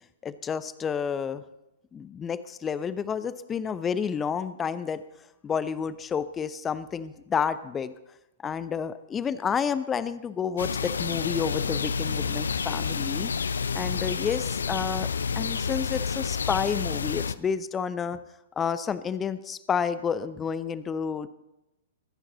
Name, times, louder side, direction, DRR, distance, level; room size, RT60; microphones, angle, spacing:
voice 1, 0.2-1.4 1.9-5.0 5.4-7.9 8.4-13.3 13.7-15.1 15.4-18.2 18.6-21.3, left 7 dB, 20° left, 15 dB, 0.6 m, -30 dB
sound 1, 10.6-17.4, left 5 dB, 70° left, 0.5 m, -29 dB
22.0 x 10.0 x 4.0 m, 0.92 s
figure-of-eight pair, 110°, 0 cm